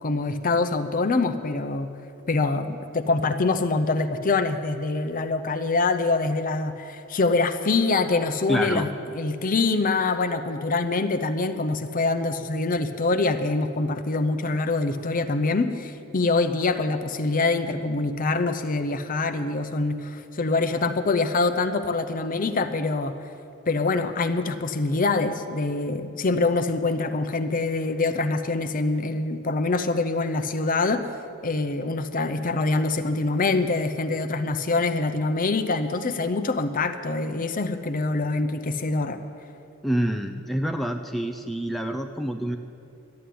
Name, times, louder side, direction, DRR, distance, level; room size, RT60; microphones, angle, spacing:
voice 1, 0.0-1.9 2.3-23.2 23.7-31.1 31.4-39.2, left 3 dB, 40° left, 9 dB, 0.7 m, -25 dB
voice 2, 8.5-8.9 39.8-42.6, right 1 dB, ahead, 3 dB, 0.5 m, -27 dB
12.5 x 8.5 x 9.4 m, 2.7 s
head